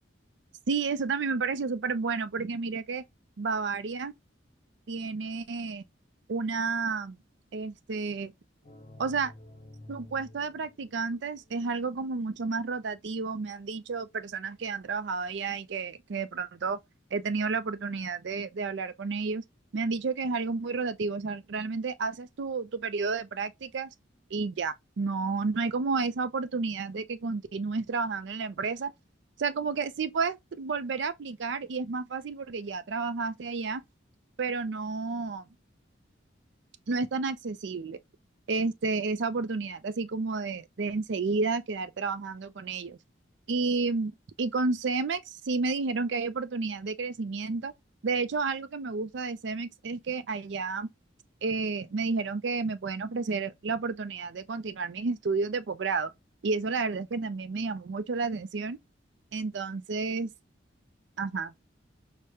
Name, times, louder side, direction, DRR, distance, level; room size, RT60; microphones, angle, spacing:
voice 1, 0.7-3.0 3.4-4.1 4.9-5.8 6.3-7.2 7.5-8.3 9.0-9.3 9.9-16.8 17.1-19.4 19.7-23.9 24.3-28.9 29.4-33.8 34.4-35.5 36.9-38.0 38.5-43.0 43.5-47.7 48.0-50.9 51.4-56.1 56.4-58.8 59.3-60.3 61.2-61.7, right 4 dB, 65° right, 0.4 m, -31 dB
sound 1, 8.6-12.3, left 1 dB, 35° left, 0.8 m, -51 dB
4.9 x 2.1 x 2.8 m
head